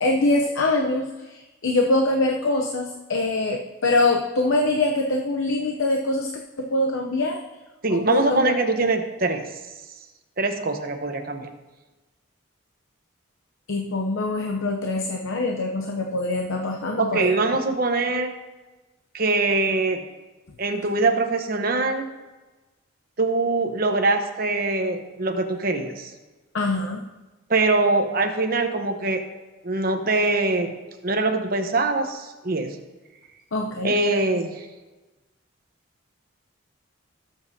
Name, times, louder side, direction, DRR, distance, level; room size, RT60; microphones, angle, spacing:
voice 1, 0.0-6.3 6.6-7.4 7.9-8.5 13.7-17.3 26.5-27.1 33.5-34.0, left 2 dB, 75° left, 2 dB, 0.8 m, -24 dB
voice 2, 7.8-9.4 10.4-11.5 17.0-18.3 19.1-20.0 20.6-22.1 23.2-26.1 27.5-29.2 29.6-30.7 31.0-32.8 33.8-34.7, right 3 dB, 45° right, 5 dB, 1.0 m, -23 dB
18.5 x 7.3 x 2.8 m, 1.2 s
head